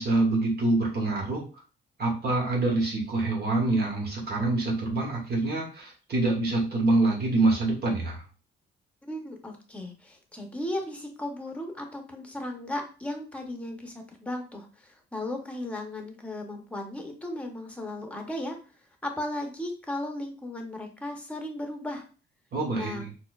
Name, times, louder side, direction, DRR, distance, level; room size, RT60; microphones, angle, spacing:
voice 1, 0.0-1.5 2.0-8.2 22.5-23.1, right 2 dB, 55° right, -2 dB, 1.2 m, -26 dB
voice 2, 9.1-18.6 19.0-22.0 22.7-23.0, left 1 dB, 5° left, 3 dB, 0.8 m, -36 dB
4.2 x 2.1 x 2.4 m, 0.36 s
cardioid pair, 90°, 20 cm